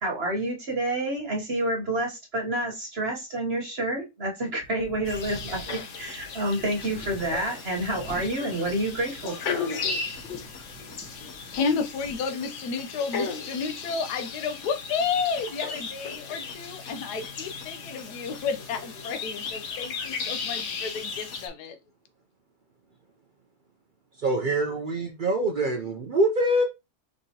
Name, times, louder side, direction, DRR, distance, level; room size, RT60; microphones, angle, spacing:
voice 1, 0.0-9.7, right 1 dB, 45° right, 1.2 m, -29 dB
sound 1, 4.6-9.4 9.8-12.2, right 1 dB, 5° left, 0.6 m, -46 dB
sound 2, 5.1-21.5, left 5 dB, 55° left, 1.0 m, -36 dB
voice 2, 11.5-21.8, left 5 dB, 80° left, 1.2 m, -31 dB
voice 3, 24.1-26.6, right 1 dB, 70° right, 0.4 m, -24 dB
4.8 x 3.9 x 2.8 m
omnidirectional pair, 1.7 m